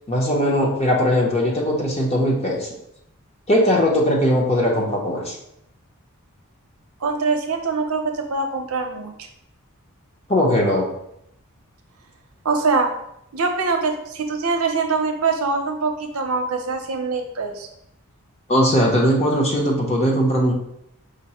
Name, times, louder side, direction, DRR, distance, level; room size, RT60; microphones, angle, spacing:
voice 1, 0.1-2.7 3.5-5.4 10.3-10.9 18.5-20.5, equal, 30° left, -1 dB, 0.7 m, -19 dB
voice 2, 7.0-9.1 12.4-12.9 13.3-17.7, right 4 dB, 75° right, 4 dB, 0.6 m, -23 dB
5.1 x 2.1 x 4.2 m, 0.78 s
head